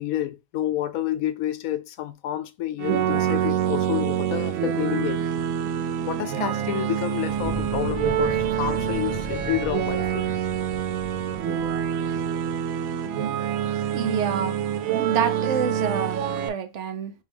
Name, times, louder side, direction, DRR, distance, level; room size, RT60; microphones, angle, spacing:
voice 1, 0.0-5.2 6.1-10.3, left 12 dB, 85° left, 1.1 m, -29 dB
sound 1, 2.8-16.5, right 10 dB, 90° right, 1.0 m, -26 dB
Fire, 7.2-12.4, left 1 dB, ahead, 1.0 m, -37 dB
voice 2, 13.9-14.6 14.9-17.1, right 7 dB, 65° right, 0.8 m, -27 dB
5.4 x 2.7 x 3.4 m
omnidirectional pair, 1.4 m